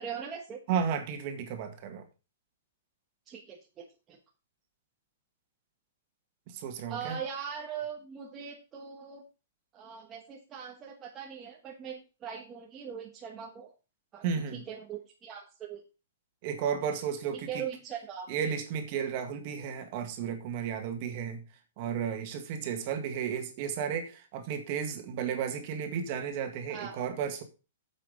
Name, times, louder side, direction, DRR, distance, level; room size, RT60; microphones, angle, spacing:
voice 1, 0.0-0.6 3.3-4.2 6.9-9.2 9.7-13.7 14.1-15.8 17.5-18.3 26.7-27.1, right 7 dB, 15° right, -1 dB, 1.4 m, -41 dB
voice 2, 0.7-2.1 6.5-7.2 14.2-14.6 16.4-17.6 18.3-21.4 21.8-27.4, right 7 dB, 35° right, 6 dB, 2.0 m, -33 dB
8.9 x 7.5 x 5.1 m, 0.31 s
hypercardioid pair, 170°, 0 cm